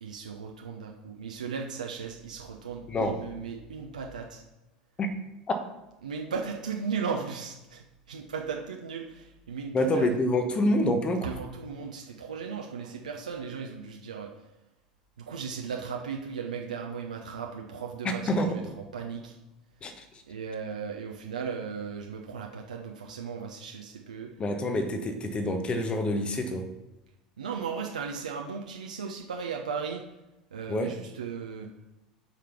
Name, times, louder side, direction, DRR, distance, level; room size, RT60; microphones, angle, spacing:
voice 1, 0.0-4.4 6.0-10.1 11.2-14.3 15.2-19.4 20.3-24.3 27.4-30.0 30.5-31.7, right 6 dB, 75° right, 1 dB, 0.8 m, -36 dB
voice 2, 2.9-3.2 5.0-5.2 5.5-5.6 9.7-11.3 18.0-18.6 19.8-20.0 24.4-26.7 30.7-31.0, left 1 dB, 25° left, 7 dB, 1.2 m, -27 dB
7.8 x 5.1 x 6.0 m, 1.0 s
figure-of-eight pair, 75°, 4 cm